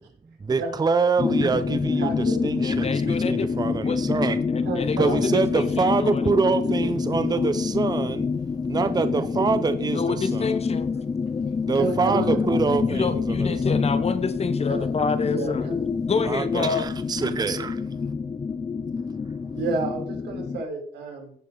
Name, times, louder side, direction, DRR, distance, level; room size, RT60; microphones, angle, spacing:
voice 1, 0.5-4.4 5.0-8.3 8.7-10.5 11.7-13.8 16.2-17.7, right 4 dB, 25° right, 0.7 m, -25 dB
sound 1, 1.2-20.6, left 5 dB, 25° left, 0.4 m, -26 dB
voice 2, 2.0-2.4 4.6-5.3 8.8-9.1 11.7-12.4 14.7-14.9 15.2-15.8 19.5-21.3, right 3 dB, 90° right, 3.2 m, -31 dB
voice 3, 2.6-3.5 3.8-4.0 4.5-6.2 9.9-10.9 12.9-15.7 16.1-16.8, left 5 dB, 40° left, 1.0 m, -28 dB
16.0 x 5.5 x 4.0 m
cardioid pair, 95°, 17 cm